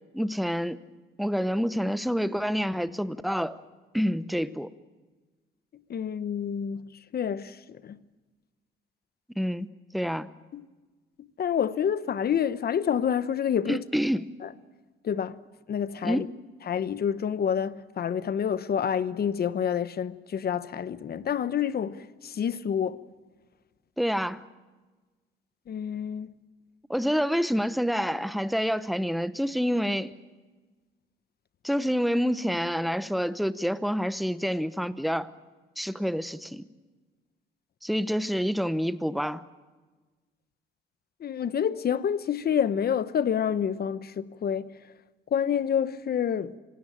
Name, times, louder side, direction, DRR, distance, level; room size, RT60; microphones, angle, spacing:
voice 1, 0.1-0.8 1.2-3.6 3.9-4.7 9.3-10.3 13.7-14.3 16.0-16.3 24.0-24.4 26.9-30.1 31.6-35.3 35.8-36.6 37.8-39.4, equal, ahead, 0.9 m, -27 dB
voice 2, 5.9-7.6 7.8-8.0 10.5-10.6 11.2-13.8 14.4-14.5 15.0-15.4 15.7-16.3 16.7-23.0 25.7-26.3 41.2-44.7 45.3-46.6, left 8 dB, 50° left, 1.0 m, -28 dB
26.0 x 17.0 x 8.9 m
cardioid pair, 90°, 20 cm